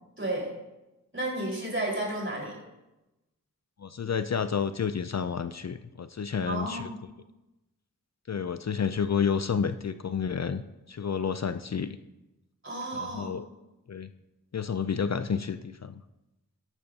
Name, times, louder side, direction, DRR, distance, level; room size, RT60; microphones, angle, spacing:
voice 1, 0.2-0.5 1.1-2.6 6.4-6.9 12.6-13.3, right 1 dB, 35° right, -3 dB, 4.7 m, -32 dB
voice 2, 3.8-6.9 8.3-10.6 10.9-12.0 12.9-13.5 13.9-14.1 14.5-16.0, left 6 dB, 50° left, 11 dB, 0.5 m, -30 dB
14.0 x 12.0 x 2.8 m, 0.98 s
wide cardioid pair, 60°, 34 cm